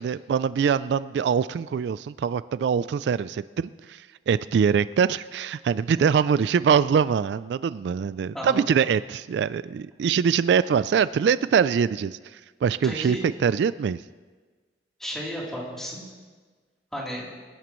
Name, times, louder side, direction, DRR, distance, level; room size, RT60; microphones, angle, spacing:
voice 1, 0.0-14.0, right 7 dB, 75° right, 16 dB, 0.3 m, -23 dB
voice 2, 12.8-13.2 15.0-16.0 16.9-17.3, equal, 5° left, -5 dB, 3.3 m, -33 dB
26.0 x 11.0 x 3.1 m, 1.4 s
head